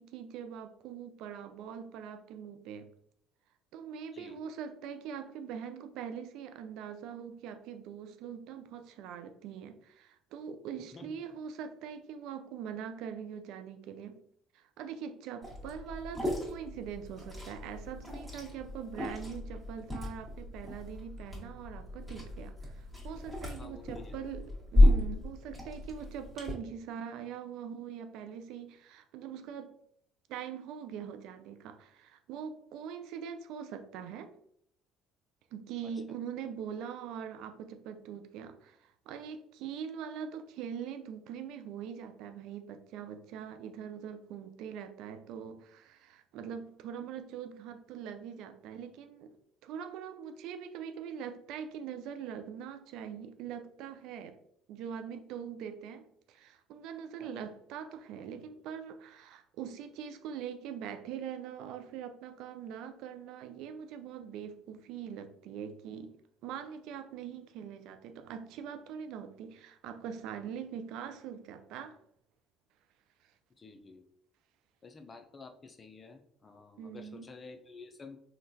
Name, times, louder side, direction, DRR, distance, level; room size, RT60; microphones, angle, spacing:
voice 1, 0.0-2.9 3.7-14.2 14.5-29.7 30.3-34.3 35.5-49.3 49.6-54.3 54.7-66.2 66.4-72.0 76.8-77.3, right 8 dB, 70° right, 8 dB, 0.3 m, -42 dB
Liquid, 15.4-26.5, left 1 dB, 5° right, 1.5 m, -32 dB
voice 2, 23.6-24.2 24.8-24.9 35.8-35.9 57.2-57.3 73.6-74.0 74.8-78.2, left 4 dB, 30° left, 6 dB, 0.5 m, -50 dB
3.6 x 2.3 x 2.7 m, 0.70 s
hypercardioid pair, 65°, 0 cm